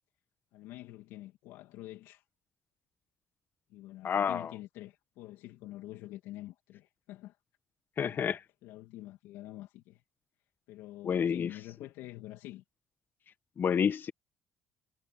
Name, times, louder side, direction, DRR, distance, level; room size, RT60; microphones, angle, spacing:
voice 1, 0.5-2.2 3.7-7.4 8.0-8.3 8.6-10.0 10.7-12.6, left 16 dB, 85° left, 2.5 m, -47 dB
voice 2, 4.0-4.5 8.0-8.4 11.0-11.5 13.6-14.1, left 7 dB, 50° left, 1.2 m, -29 dB
supercardioid pair, 80°, 4 cm